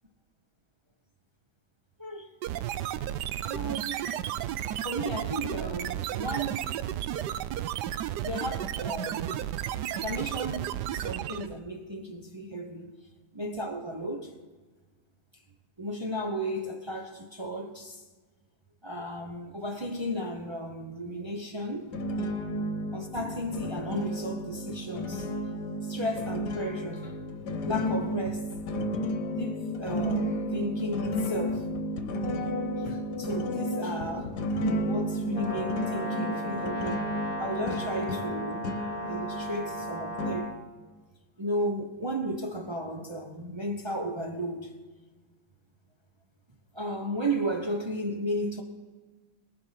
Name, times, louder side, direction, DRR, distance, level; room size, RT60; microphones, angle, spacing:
voice 1, 2.0-2.3 3.4-4.1 4.8-6.7 8.2-9.4 9.9-12.9 13.3-14.3 15.8-18.0 18.8-21.9 22.9-25.3 25.8-27.2 27.6-28.5 29.4-31.7 32.8-34.4 34.8-37.0 37.4-38.7 39.1-40.5 41.4-44.7 46.7-48.6, equal, 35° right, 0.4 m, -34 dB
sound 1, 2.4-11.6, right 11 dB, 70° right, 1.0 m, -33 dB
sound 2, 21.9-40.3, equal, 60° left, 1.5 m, -32 dB
Brass instrument, 35.3-40.6, right 1 dB, 20° left, 1.8 m, -36 dB
20.0 x 7.8 x 5.8 m
omnidirectional pair, 2.1 m